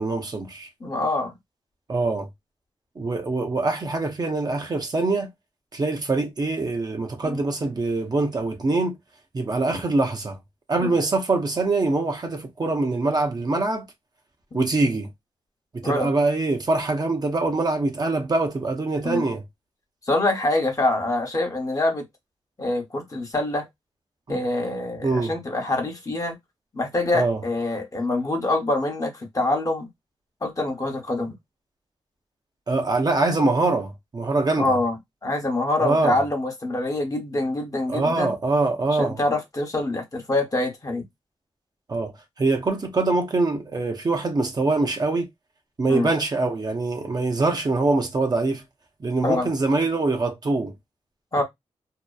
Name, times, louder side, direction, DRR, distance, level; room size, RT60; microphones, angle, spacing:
voice 1, 0.0-0.7 1.9-2.3 3.0-5.3 5.7-9.0 9.3-10.4 10.7-13.8 14.5-15.1 15.7-19.4 24.3-24.4 25.0-25.3 27.1-27.4 32.7-34.8 35.8-36.2 37.9-39.2 41.9-42.1 42.4-45.3 45.8-48.6 49.0-50.7, right 3 dB, 40° right, 0.6 m, -24 dB
voice 2, 0.8-1.3 7.2-7.4 10.8-10.9 14.5-14.6 15.8-16.1 19.0-19.2 20.1-22.0 22.6-23.7 24.3-26.4 26.7-29.9 30.4-31.3 34.6-35.0 35.2-38.3 38.9-41.0 45.9-46.1 49.2-49.5 51.3-51.4, left 2 dB, 30° left, 0.9 m, -25 dB
2.7 x 2.0 x 2.3 m
cardioid pair, 55°, 11 cm